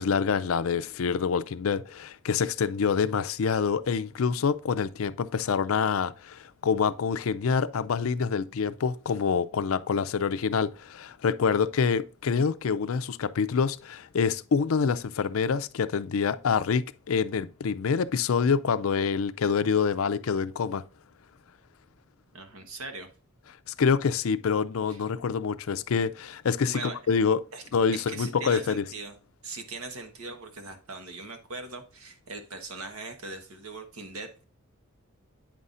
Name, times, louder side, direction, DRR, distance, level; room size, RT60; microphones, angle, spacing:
voice 1, 0.0-20.8 23.8-27.4 27.7-28.8, left 6 dB, 70° left, 0.4 m, -26 dB
voice 2, 22.3-23.1 24.9-25.0 26.7-27.0 27.5-27.6 27.9-29.1 29.4-34.4, right 3 dB, 90° right, 1.3 m, -40 dB
8.8 x 5.5 x 2.5 m
head